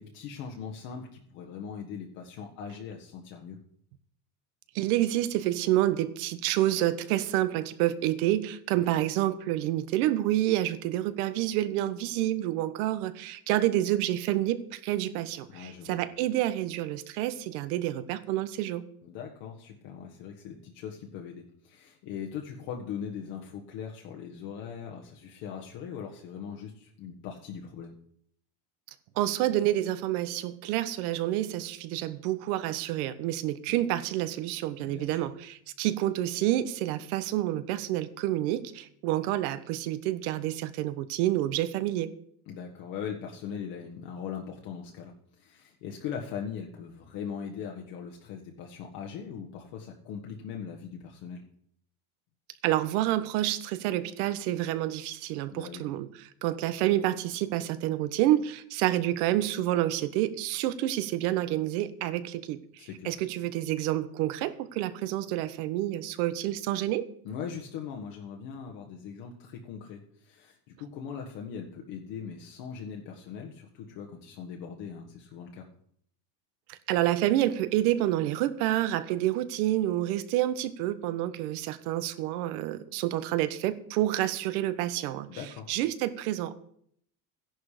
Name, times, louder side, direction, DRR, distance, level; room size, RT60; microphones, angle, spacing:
voice 1, 0.0-3.6 15.5-16.0 19.0-27.9 33.7-33.8 34.8-35.3 42.5-51.4 55.5-55.9 62.8-63.2 67.2-75.7 85.3-85.7, left 7 dB, 60° left, 1 dB, 1.6 m, -40 dB
voice 2, 4.7-18.8 29.2-42.1 52.6-56.1 56.4-62.6 63.0-67.0 76.7-85.3 85.7-86.5, right 14 dB, 85° right, 12 dB, 1.2 m, -28 dB
14.5 x 11.0 x 5.0 m, 0.67 s
cardioid pair, 170°, 43 cm